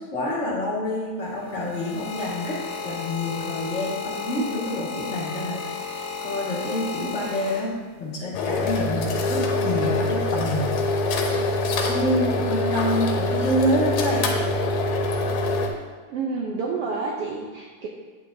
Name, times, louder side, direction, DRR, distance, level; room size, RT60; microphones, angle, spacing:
voice 1, 0.0-7.7 8.0-11.1 11.8-14.3, left 1 dB, 30° left, -6 dB, 1.6 m, -27 dB
sound 1, 1.2-8.1 8.9-9.2, left 5 dB, 55° left, 2.2 m, -34 dB
sound 2, 8.3-15.7, left 2 dB, 75° left, 2.0 m, -24 dB
voice 2, 16.1-17.9, right 4 dB, 70° right, -2 dB, 1.5 m, -29 dB
8.8 x 8.2 x 2.7 m, 1.4 s
omnidirectional pair, 3.3 m